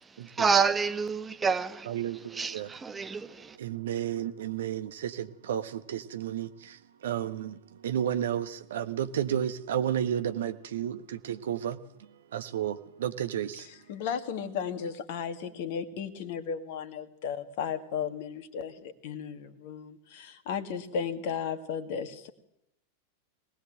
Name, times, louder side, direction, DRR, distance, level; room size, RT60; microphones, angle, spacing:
voice 1, 0.4-1.9 2.4-3.6, right 5 dB, 15° right, 1.4 m, -28 dB
voice 2, 1.8-3.1 3.5-13.7, right 10 dB, 60° right, 1.4 m, -32 dB
voice 3, 13.9-22.3, left 7 dB, 50° left, 2.2 m, -35 dB
23.5 x 18.5 x 7.8 m
figure-of-eight pair, 90°, 0 cm